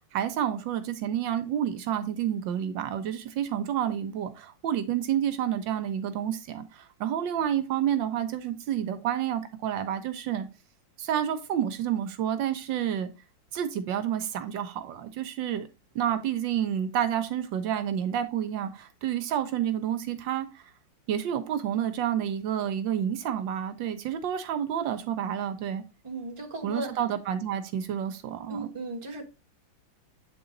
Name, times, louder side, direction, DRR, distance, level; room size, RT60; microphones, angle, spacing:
voice 1, 0.1-10.5 11.0-13.1 13.5-15.7 15.9-20.6 21.1-25.8 26.6-28.7, right 10 dB, 80° right, 1.3 m, -29 dB
voice 2, 26.0-27.0 28.5-29.2, right 1 dB, 20° right, 1.1 m, -36 dB
8.1 x 3.9 x 3.7 m
omnidirectional pair, 2.1 m